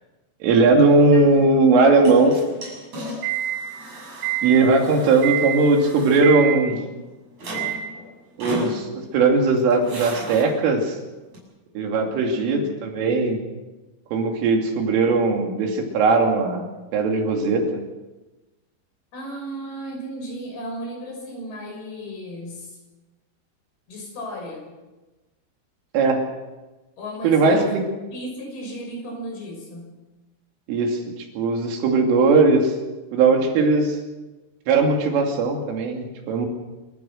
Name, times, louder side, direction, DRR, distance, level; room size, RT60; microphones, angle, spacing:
voice 1, 0.4-2.4 4.4-6.8 8.4-11.0 11.8-13.4 14.1-16.7 16.9-17.8 25.9-26.3 27.2-27.9 30.7-31.0 31.4-32.7 33.1-34.0 34.7-36.5, right 3 dB, 85° right, 2 dB, 5.2 m, -18 dB
sound 1, 2.0-7.1 7.4-8.0 8.4-9.2 9.5-10.4 11.3-11.4, right 7 dB, 35° right, 8.1 m, -30 dB
voice 2, 12.3-12.8 19.1-22.8 23.9-24.7 27.0-27.7 28.1-29.9, equal, 50° left, 0 dB, 7.9 m, -35 dB
28.0 x 14.5 x 6.5 m, 1.1 s
omnidirectional pair, 5.6 m